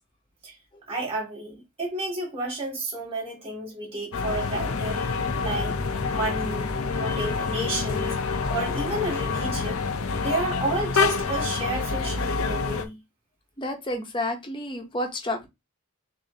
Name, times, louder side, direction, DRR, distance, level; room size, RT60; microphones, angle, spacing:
voice 1, 0.9-5.8 6.1-8.2 8.5-9.8 10.2-13.0, right 2 dB, 25° right, 2.5 m, -31 dB
sound 1, 4.1-12.8, left 4 dB, 70° left, 0.7 m, -27 dB
voice 2, 13.6-15.5, left 1 dB, 20° left, 0.9 m, -30 dB
6.6 x 2.8 x 2.8 m
head